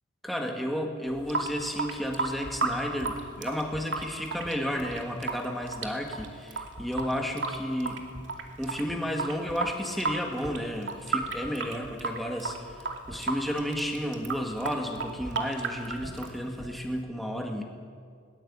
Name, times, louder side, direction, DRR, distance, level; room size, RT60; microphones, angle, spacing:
voice 1, 0.2-8.0 8.6-17.6, equal, ahead, 2 dB, 1.9 m, -32 dB
Water tap faucet / Sink (filling or washing) / Drip, 1.1-17.0, right 3 dB, 70° right, 2.6 m, -34 dB
21.0 x 19.0 x 8.7 m, 2.1 s
head